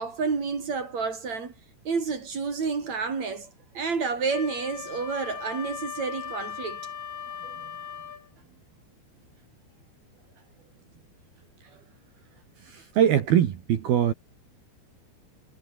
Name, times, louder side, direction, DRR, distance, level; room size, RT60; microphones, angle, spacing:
voice 1, 0.0-1.5 1.8-3.5 3.7-6.8, right 5 dB, 35° right, 4.3 m, -29 dB
Wind instrument woodwind instrument, 4.3-8.3, left 7 dB, 70° left, 6.8 m, -38 dB
voice 2, 12.6-14.1, right 10 dB, 60° right, 3.2 m, -22 dB
omnidirectional pair, 6.0 m